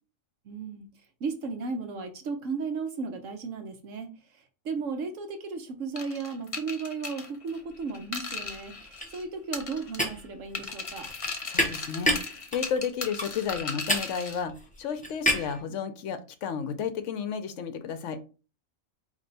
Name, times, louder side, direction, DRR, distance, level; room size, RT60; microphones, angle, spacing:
voice 1, 0.5-0.8 1.2-4.1 4.6-11.1, right 4 dB, 70° right, 1.2 m, -35 dB
sound 1, 6.0-9.2 9.5-10.2 10.5-14.4, left 4 dB, 30° left, 0.7 m, -37 dB
sound 2, 7.8-8.1 8.4-15.6, equal, 5° left, 0.9 m, -31 dB
voice 2, 11.5-12.2 12.5-14.5 14.8-18.2, left 7 dB, 70° left, 0.9 m, -32 dB
4.4 x 2.9 x 4.0 m
omnidirectional pair, 1.4 m